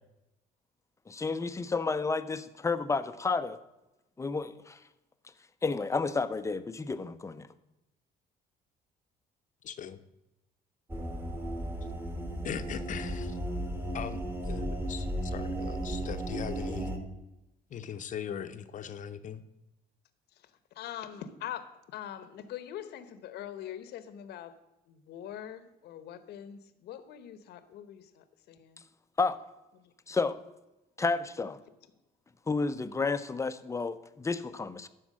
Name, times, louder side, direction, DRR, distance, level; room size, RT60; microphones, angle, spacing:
voice 1, 1.1-3.6 4.2-4.8 5.6-7.5 29.2-29.4 30.1-30.4 31.0-31.6 32.5-34.9, left 4 dB, 15° left, 12 dB, 0.6 m, -31 dB
voice 2, 9.6-10.0 12.4-13.4 13.9-16.9 17.7-19.4, left 8 dB, 50° left, 10 dB, 0.8 m, -40 dB
sound 1, 10.9-17.0, right 1 dB, 10° right, 1.5 m, -35 dB
voice 3, 20.8-24.6 24.9-28.8, left 10 dB, 75° left, 12 dB, 1.0 m, -43 dB
12.0 x 4.6 x 7.4 m, 0.96 s
cardioid pair, 110°, 17 cm